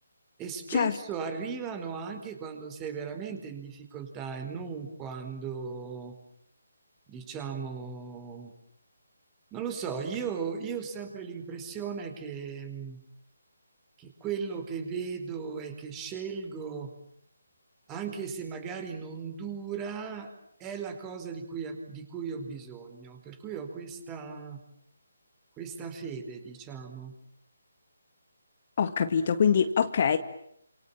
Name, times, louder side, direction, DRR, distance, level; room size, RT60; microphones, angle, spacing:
voice 1, 0.4-6.1 7.1-8.5 9.5-13.0 14.0-16.9 17.9-20.3 20.6-24.6 25.6-27.1, right 6 dB, 15° right, 7 dB, 4.6 m, -37 dB
voice 2, 28.8-30.2, left 7 dB, 40° left, 10 dB, 2.0 m, -24 dB
29.5 x 27.5 x 7.4 m, 0.71 s
figure-of-eight pair, 145°, 0 cm